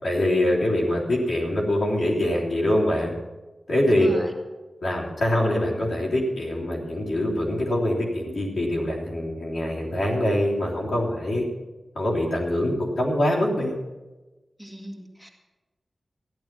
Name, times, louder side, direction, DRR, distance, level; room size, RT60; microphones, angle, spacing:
voice 1, 0.0-3.1 3.7-4.2 4.8-11.4 11.9-13.7, left 1 dB, 85° left, -4 dB, 3.3 m, -24 dB
voice 2, 3.9-4.3 14.6-15.3, equal, 5° left, 2 dB, 2.0 m, -37 dB
14.0 x 11.0 x 6.0 m, 1.1 s
wide cardioid pair, 95°, 0 cm